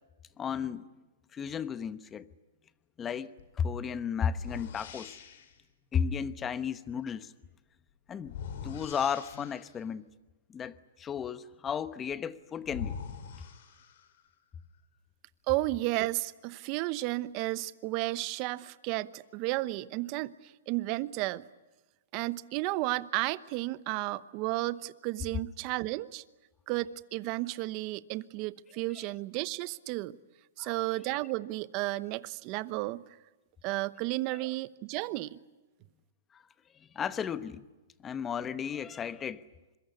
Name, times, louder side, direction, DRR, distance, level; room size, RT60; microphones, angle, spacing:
voice 1, 0.4-0.9 1.3-2.3 3.0-5.1 5.9-7.3 8.1-8.4 8.6-10.1 10.5-13.0 30.6-30.7 36.3-36.4 36.9-37.6 38.0-39.4, left 7 dB, 15° left, 1.0 m, -34 dB
sound 1, 3.4-3.6 4.3-5.6 8.2-9.8 12.1-12.2 12.6-14.3, left 7 dB, 60° left, 4.7 m, -43 dB
voice 2, 15.5-21.4 22.1-26.2 26.7-30.2 30.6-33.0 33.6-35.4, right 19 dB, 35° right, 0.9 m, -33 dB
26.0 x 23.0 x 9.7 m
hypercardioid pair, 150°, 0 cm